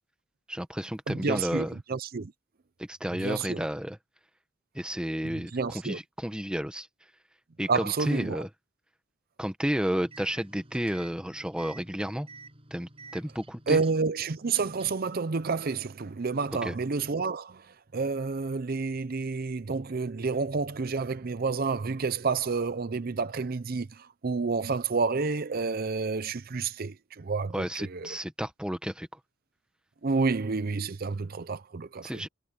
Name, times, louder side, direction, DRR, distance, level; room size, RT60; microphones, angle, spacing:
voice 1, 0.5-1.8 2.8-4.0 4.7-6.9 7.6-8.5 9.4-12.3 12.7-13.8 16.6-16.8 27.5-29.1 32.0-32.3, equal, 5° right, 1.3 m, -32 dB
voice 2, 1.1-2.3 3.2-3.6 5.5-6.0 7.7-8.4 13.7-17.7 17.9-28.1 30.0-32.2, right 4 dB, 45° right, 0.6 m, -29 dB
sound 1, 10.0-15.1, right 3 dB, 25° right, 6.8 m, -51 dB
head